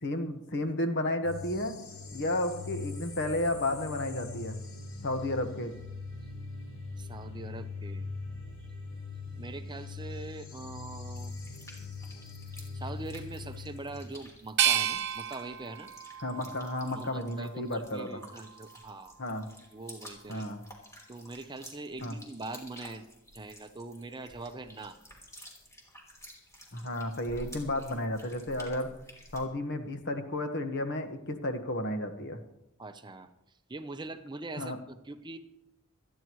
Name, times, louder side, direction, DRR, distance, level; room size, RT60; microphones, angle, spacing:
voice 1, 0.0-1.7 2.1-4.6 5.0-5.7 16.2-18.1 19.2-19.5 20.3-20.6 22.0-22.1 26.7-28.9 29.3-32.4 34.6-34.8, left 1 dB, 55° left, 6 dB, 1.4 m, -32 dB
sound 1, 1.2-14.0, left 4 dB, 75° left, 5.6 m, -41 dB
voice 2, 7.0-8.1 9.4-11.4 12.7-15.9 17.0-19.2 19.7-20.5 21.1-23.0 23.3-25.0 32.8-33.3 33.7-35.4, right 2 dB, 20° right, 8 dB, 0.7 m, -42 dB
sound 2, 11.1-29.5, equal, 15° left, 3.2 m, -52 dB
sound 3, 14.6-17.5 18.0-18.9, right 10 dB, 55° right, 0.9 m, -32 dB
26.5 x 10.0 x 3.1 m, 0.87 s
head